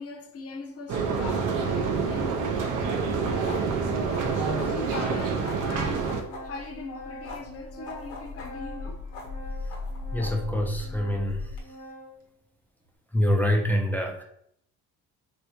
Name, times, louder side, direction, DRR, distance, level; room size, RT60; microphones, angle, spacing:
voice 1, 0.0-2.5 4.2-6.1 6.4-9.1, left 3 dB, 40° left, 0.6 m, -40 dB
sound 1, 0.9-6.2, right 5 dB, 60° right, 0.6 m, -27 dB
Organ, 2.6-12.2, equal, 25° right, 1.1 m, -45 dB
sound 2, 2.9-11.6, left 3 dB, 85° left, 1.0 m, -39 dB
voice 2, 10.1-11.6 13.1-14.2, equal, 5° left, 0.4 m, -26 dB
3.3 x 2.6 x 2.9 m
cardioid pair, 105°, 36 cm